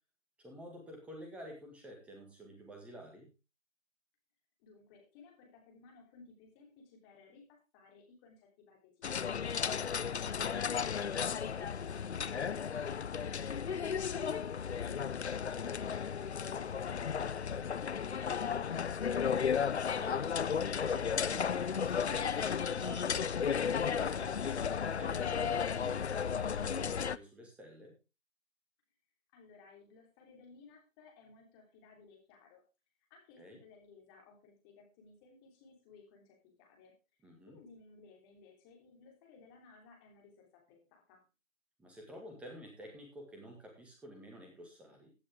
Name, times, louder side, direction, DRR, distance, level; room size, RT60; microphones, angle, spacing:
voice 1, 0.4-3.3 9.9-10.3 19.9-20.4 20.7-23.5 23.7-27.9 33.4-33.6 37.2-37.6 41.8-45.1, equal, 5° right, 1 dB, 1.8 m, -50 dB
voice 2, 4.6-9.8 29.3-32.6 33.1-41.2, left 4 dB, 15° left, 1 dB, 3.4 m, -60 dB
sound 1, 9.0-27.2, left 7 dB, 55° left, 0.6 m, -34 dB
15.5 x 8.6 x 3.5 m, 0.29 s
figure-of-eight pair, 150°, 40 cm